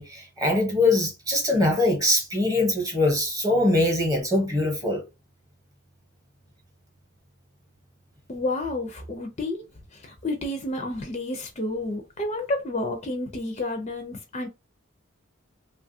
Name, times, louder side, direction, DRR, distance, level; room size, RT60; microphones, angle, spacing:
voice 1, 0.0-5.0, left 2 dB, 15° right, 0.8 m, -22 dB
voice 2, 8.3-9.6 9.9-14.5, left 2 dB, 30° left, 0.4 m, -30 dB
2.9 x 2.3 x 2.6 m
head